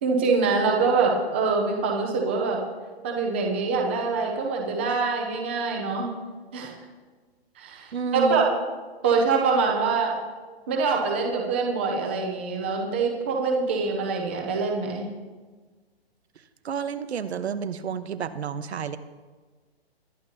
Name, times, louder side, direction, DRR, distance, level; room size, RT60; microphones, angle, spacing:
voice 1, 0.0-2.6 3.0-6.1 6.5-6.7 7.6-8.6 9.0-10.2 10.7-15.1, right 4 dB, 10° right, 0 dB, 0.6 m, -24 dB
voice 2, 7.9-8.5 16.6-19.0, right 7 dB, 85° right, 11 dB, 1.0 m, -30 dB
21.0 x 10.5 x 2.8 m, 1.4 s
hypercardioid pair, 175°, 32 cm